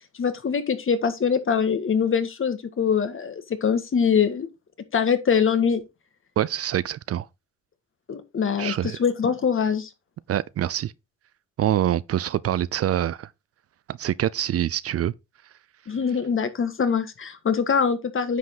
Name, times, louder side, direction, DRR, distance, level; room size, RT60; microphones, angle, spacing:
voice 1, 0.2-4.5 4.9-5.8 8.1-9.9 15.9-18.4, left 6 dB, 45° left, 1.7 m, -23 dB
voice 2, 6.4-7.3 8.6-9.0 10.3-10.9 11.6-13.3 13.9-15.1, right 11 dB, 50° right, 0.5 m, -25 dB
9.4 x 5.3 x 3.9 m
cardioid pair, 90°, 30 cm